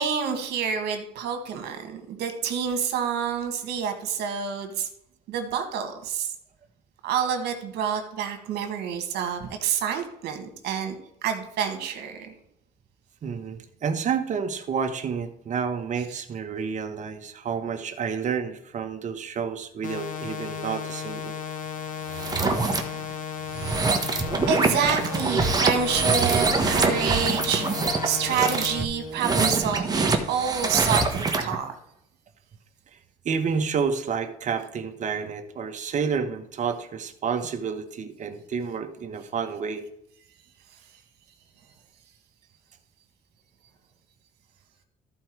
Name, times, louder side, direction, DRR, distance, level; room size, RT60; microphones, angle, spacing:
voice 1, 0.0-4.9 5.3-6.3 7.0-10.9 11.2-12.3 22.8-23.2 23.5-24.2 24.5-31.7, right 7 dB, 80° right, 6 dB, 1.8 m, -28 dB
voice 2, 13.2-21.3 33.2-39.9, right 6 dB, 45° right, 7 dB, 1.2 m, -29 dB
sound 1, 19.8-28.8, left 8 dB, 50° left, 1.1 m, -34 dB
sound 2, 22.1-22.8 23.5-31.5, right 3 dB, 25° right, 1.4 m, -24 dB
14.0 x 4.7 x 4.6 m, 0.77 s
cardioid pair, 110°, 17 cm